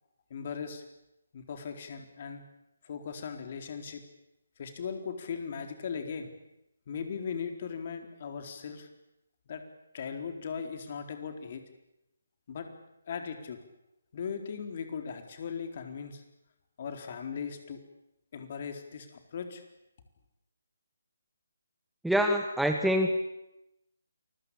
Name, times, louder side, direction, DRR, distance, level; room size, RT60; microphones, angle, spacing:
voice 1, 0.3-0.8 1.3-2.4 2.8-4.0 4.6-6.3 6.9-8.9 9.5-9.6 9.9-11.6 12.5-12.7 13.1-13.6 14.1-16.2 16.8-17.8 18.3-19.6, left 6 dB, 40° left, 6 dB, 4.2 m, -38 dB
voice 2, 22.0-23.2, equal, ahead, 5 dB, 1.3 m, -25 dB
28.0 x 22.0 x 8.6 m, 0.88 s
figure-of-eight pair, 145°, 0 cm